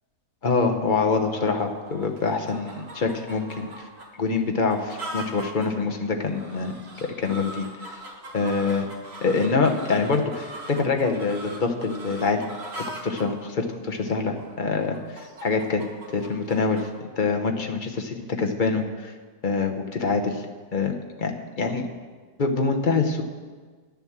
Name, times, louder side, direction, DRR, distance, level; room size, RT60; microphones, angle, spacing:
voice 1, 0.4-3.9 4.2-6.7 7.2-7.9 8.3-8.9 9.2-12.4 13.0-16.8 17.2-19.1 19.4-20.5 20.7-21.8 22.4-23.2, left 4 dB, 40° left, 3 dB, 1.0 m, -25 dB
sound 1, 1.3-16.9, right 1 dB, 45° right, 1.8 m, -41 dB
11.0 x 7.3 x 7.3 m, 1.5 s
omnidirectional pair, 1.5 m